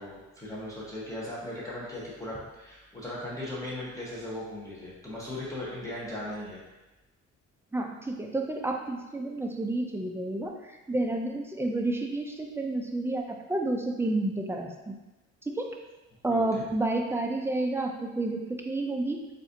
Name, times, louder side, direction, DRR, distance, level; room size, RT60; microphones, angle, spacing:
voice 1, 0.0-6.6 16.3-16.6, left 1 dB, 10° left, -7 dB, 0.9 m, -38 dB
voice 2, 7.7-14.9 15.5-15.8 16.2-19.3, right 2 dB, 10° right, 2 dB, 0.3 m, -30 dB
3.9 x 2.5 x 2.5 m, 1.1 s
cardioid pair, 90°, 30 cm